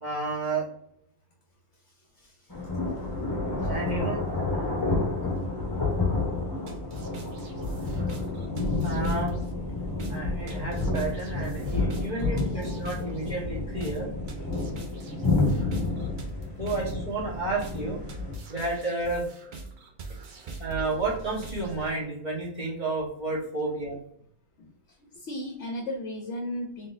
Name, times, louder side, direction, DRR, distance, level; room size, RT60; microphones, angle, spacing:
voice 1, 0.0-0.7 3.7-4.2 8.8-9.3 10.1-14.1 16.6-18.0 18.5-19.3 20.6-24.0, right 3 dB, 30° right, -6 dB, 1.4 m, -31 dB
voice 2, 1.7-2.6 3.6-3.7 5.9-6.1 6.7-6.9 12.3-12.8 23.9-24.0 24.6-26.9, left 1 dB, 60° left, 1 dB, 0.9 m, -38 dB
sound 1, 2.5-18.4, left 3 dB, 15° left, 0.9 m, -30 dB
sound 2, 6.7-21.9, right 3 dB, 50° right, 0.6 m, -42 dB
3.9 x 3.8 x 2.6 m, 0.68 s
omnidirectional pair, 1.6 m